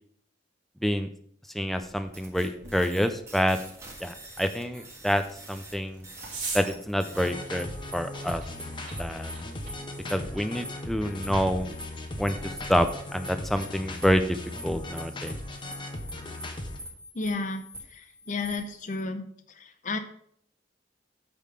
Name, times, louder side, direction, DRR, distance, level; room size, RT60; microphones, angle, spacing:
voice 1, 1.5-3.6 4.0-6.1 6.5-7.7 7.9-8.4 9.0-9.3 10.1-11.7 12.2-14.2 14.6-15.4, equal, ahead, 8 dB, 0.4 m, -27 dB
sound 1, 1.8-12.8, right 3 dB, 45° right, 2.9 m, -44 dB
sound 2, 2.1-19.0, equal, 15° right, 1.5 m, -46 dB
sound 3, 7.1-16.8, left 1 dB, 25° left, 0.9 m, -38 dB
voice 2, 17.1-17.6 17.9-19.2 19.6-20.0, left 3 dB, 40° left, 8 dB, 0.6 m, -32 dB
8.4 x 3.7 x 6.5 m, 0.64 s
head